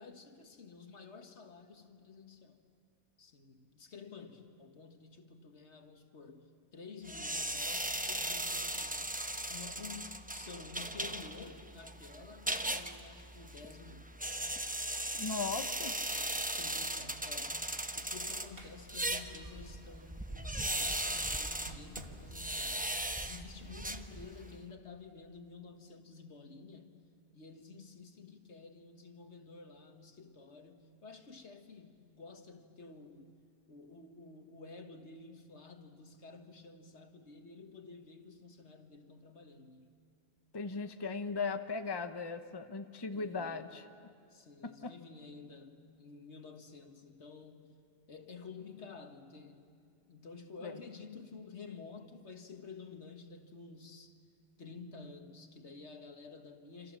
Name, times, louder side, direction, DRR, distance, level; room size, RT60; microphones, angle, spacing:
voice 1, 0.0-2.6 3.2-9.2 9.5-14.1 16.1-17.6 17.9-22.9 23.2-26.9 27.3-33.3 33.7-39.9 43.1-43.7 44.3-47.8 48.1-49.7 50.1-54.1 54.6-57.0, left 4 dB, 75° left, 6 dB, 1.9 m, -51 dB
sound 1, 7.1-24.6, right 1 dB, 10° right, 0.8 m, -38 dB
voice 2, 15.1-16.0 40.5-43.9 44.6-44.9 50.6-50.8, left 4 dB, 25° left, 8 dB, 0.9 m, -38 dB
Squeak, 17.3-20.5 21.3-22.5, right 1 dB, 55° right, 2.4 m, -55 dB
27.5 x 27.0 x 7.5 m, 2.3 s
omnidirectional pair, 1.2 m